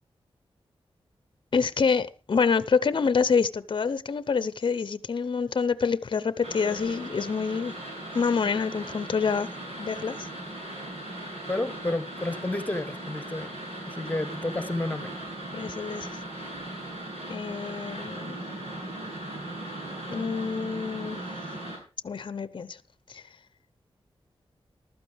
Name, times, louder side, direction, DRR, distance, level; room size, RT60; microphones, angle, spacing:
voice 1, 1.5-7.8 8.1-9.5 9.8-10.3 15.5-16.2 17.3-18.4 20.1-21.2 22.0-22.8 23.1-23.2, left 5 dB, 50° left, 0.7 m, -27 dB
sound 1, 6.4-21.8, right 1 dB, 90° right, 6.9 m, -38 dB
voice 2, 11.5-13.5 13.9-15.1, left 2 dB, 15° left, 1.2 m, -31 dB
15.0 x 12.5 x 3.5 m
wide cardioid pair, 130°, 10 cm